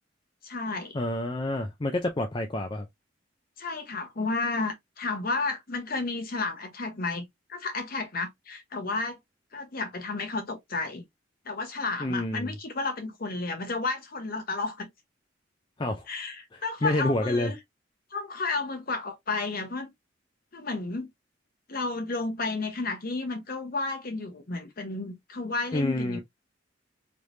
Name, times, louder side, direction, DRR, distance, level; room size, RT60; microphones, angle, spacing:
voice 1, 0.4-1.0 3.6-9.2 9.5-11.0 11.4-14.9 16.1-17.5 18.1-19.9 20.5-21.1 21.7-26.2, left 3 dB, 50° left, 1.0 m, -32 dB
voice 2, 0.9-2.9 12.0-12.5 15.8-16.1 16.5-17.5 25.7-26.2, left 1 dB, 25° left, 0.5 m, -28 dB
3.3 x 3.2 x 2.6 m
head